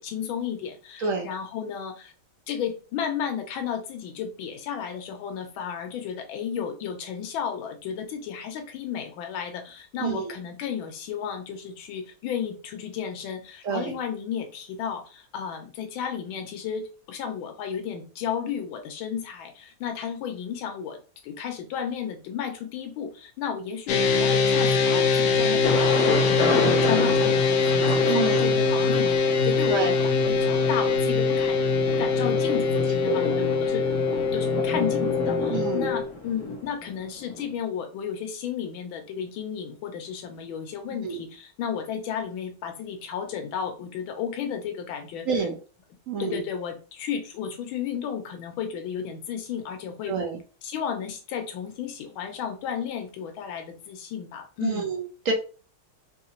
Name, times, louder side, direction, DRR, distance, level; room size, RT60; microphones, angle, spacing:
voice 1, 0.0-2.1 2.5-31.6 31.9-45.5 46.2-50.2 50.6-54.9, left 8 dB, 90° left, 5 dB, 1.5 m, -33 dB
voice 2, 10.0-10.3 13.6-13.9 28.1-28.5 29.7-29.9 33.1-33.2 35.5-35.9 41.0-41.2 45.3-45.6 46.1-46.4 50.1-50.4 54.6-55.3, right 5 dB, 60° right, 1 dB, 0.8 m, -28 dB
sound 1, 23.9-36.0, left 4 dB, 70° left, 1.0 m, -23 dB
Thunder, 25.6-37.4, left 3 dB, 45° left, 1.4 m, -30 dB
5.0 x 2.8 x 2.8 m, 0.36 s
omnidirectional pair, 2.2 m